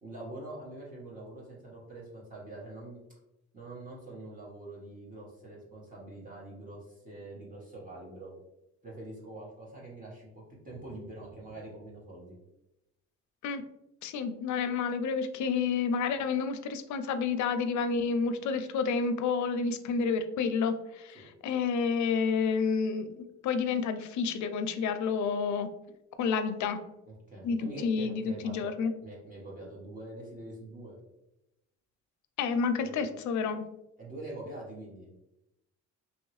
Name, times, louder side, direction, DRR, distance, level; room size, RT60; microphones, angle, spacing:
voice 1, 0.0-3.0 3.5-8.3 8.8-12.4 21.1-21.3 27.1-28.8 29.0-30.9 32.8-33.0 34.0-35.1, right 2 dB, 25° right, -5 dB, 1.3 m, -44 dB
voice 2, 14.0-25.7 26.2-26.8 27.4-28.9 32.4-33.7, left 5 dB, 70° left, 10 dB, 0.5 m, -30 dB
2.9 x 2.8 x 3.0 m, 0.90 s
cardioid pair, 90°, 30 cm